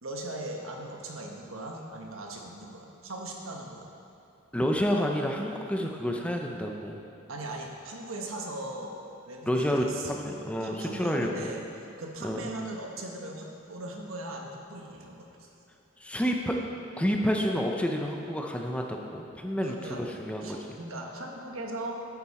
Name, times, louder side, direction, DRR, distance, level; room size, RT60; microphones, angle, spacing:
voice 1, 0.0-3.9 7.3-8.9 9.3-10.1 10.6-11.6 12.0-15.3 19.6-20.0 20.4-21.9, right 2 dB, 75° right, 1 dB, 1.3 m, -39 dB
voice 2, 4.5-6.9 9.5-11.5 12.2-12.4 16.0-16.6 17.0-20.8, equal, 5° left, 1 dB, 0.6 m, -29 dB
9.9 x 8.4 x 4.3 m, 2.7 s
head